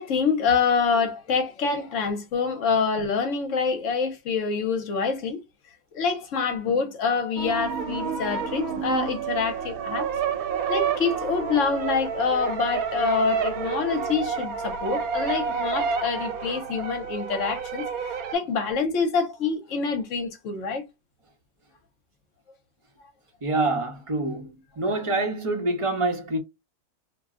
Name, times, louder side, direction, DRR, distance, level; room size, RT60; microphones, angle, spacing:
voice 1, 0.0-5.4 5.9-10.1 10.7-17.9 18.3-20.8, left 5 dB, 60° left, 1.0 m, -26 dB
sound 1, 7.4-18.3, right 6 dB, 80° right, 1.1 m, -29 dB
voice 2, 23.4-26.4, right 2 dB, 25° right, 0.8 m, -26 dB
2.6 x 2.2 x 3.6 m
omnidirectional pair, 1.6 m